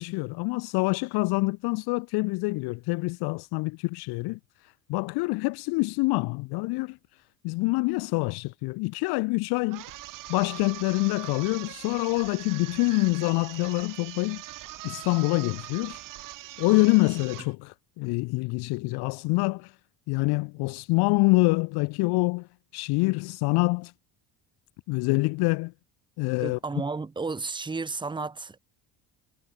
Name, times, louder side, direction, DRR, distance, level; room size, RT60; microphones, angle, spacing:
voice 1, 0.0-9.8 10.3-14.4 14.8-16.0 16.6-19.8 20.1-23.9 24.9-25.7 26.2-26.6, left 26 dB, 75° left, 0.6 m, -26 dB
sound 1, 9.7-17.5, right 15 dB, 55° right, 4.7 m, -42 dB
voice 2, 26.4-28.6, right 4 dB, 10° right, 2.3 m, -32 dB
cardioid pair, 180°, 38 cm